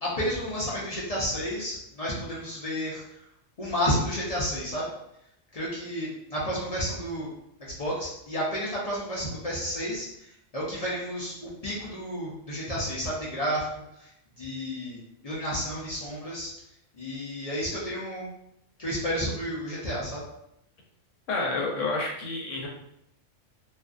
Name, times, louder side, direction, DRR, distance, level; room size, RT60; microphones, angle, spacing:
voice 1, 0.0-3.2 3.6-4.9 5.5-7.3 7.7-13.7 13.9-14.1 14.4-16.5 16.9-18.3 18.8-20.2, equal, 50° left, -6 dB, 0.4 m, -31 dB
voice 2, 21.3-22.7, left 3 dB, 75° left, -1 dB, 1.0 m, -29 dB
2.5 x 2.3 x 2.4 m, 0.78 s
omnidirectional pair, 1.3 m